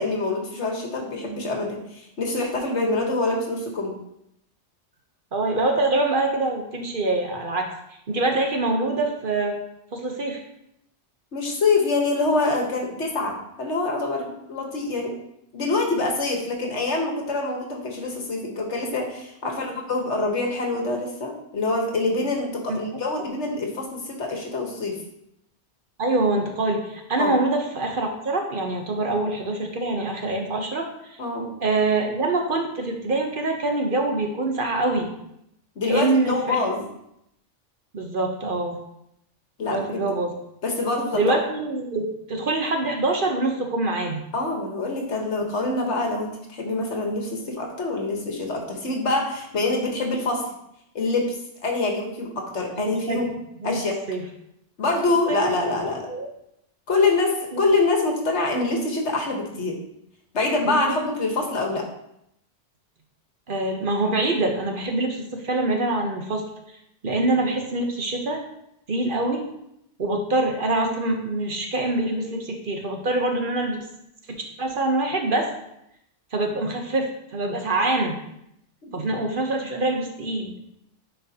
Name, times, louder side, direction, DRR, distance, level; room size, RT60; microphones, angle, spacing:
voice 1, 0.0-3.9 11.3-15.1 15.5-25.0 27.2-27.3 31.2-31.5 35.7-36.9 39.6-39.9 40.6-41.4 44.3-50.4 50.9-53.3 53.6-54.0 54.8-56.1 56.9-59.7 60.3-61.9 78.8-78.9, left 3 dB, 70° left, 1 dB, 1.5 m, -25 dB
voice 2, 5.3-9.6 9.9-10.4 19.7-19.8 22.7-22.9 26.0-31.2 31.6-35.1 35.8-36.7 37.9-38.8 39.7-40.3 41.1-44.2 52.8-53.2 53.6-53.8 54.1-54.2 55.3-55.5 56.1-56.3 57.5-57.6 60.6-61.0 63.5-66.4 67.0-68.4 68.9-69.4 70.0-73.8 74.3-75.5 76.3-78.2 78.9-80.5, right 2 dB, 50° right, 3 dB, 0.9 m, -25 dB
10.0 x 4.5 x 2.8 m, 0.79 s
omnidirectional pair, 1.2 m